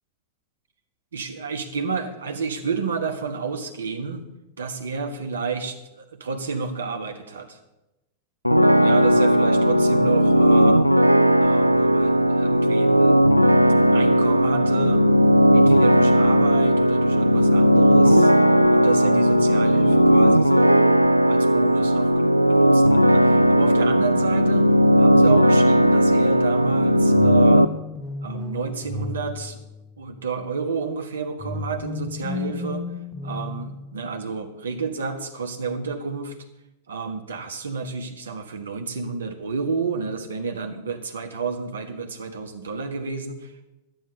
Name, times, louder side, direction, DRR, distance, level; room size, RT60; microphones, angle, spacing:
voice 1, 1.1-4.2 4.6-7.6 8.8-10.8 11.3-13.2 13.9-15.1 15.5-18.3 18.7-20.9 21.3-24.7 25.0-27.7 28.2-29.6 30.0-32.9 33.2-36.4 36.9-43.7, right 5 dB, 70° right, 6 dB, 1.4 m, -30 dB
sound 1, 8.4-27.7, equal, 90° left, 0.3 m, -17 dB
sound 2, 27.1-30.2 31.4-34.3, left 3 dB, 5° left, 1.3 m, -34 dB
11.5 x 9.2 x 6.8 m, 0.96 s
figure-of-eight pair, 90°, 0 cm